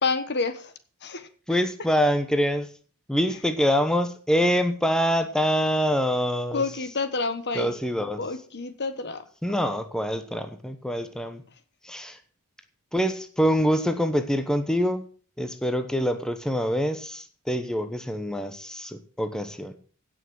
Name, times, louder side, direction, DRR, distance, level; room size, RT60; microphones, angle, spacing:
voice 1, 0.0-0.7 1.0-1.3 6.5-7.7 8.2-9.2, left 4 dB, 50° left, 1.3 m, -28 dB
voice 2, 1.5-2.7 3.1-6.6 7.6-8.2 9.4-11.4 11.8-12.2 12.9-15.1 15.4-19.8, equal, 5° left, 1.0 m, -25 dB
16.5 x 6.3 x 6.4 m
head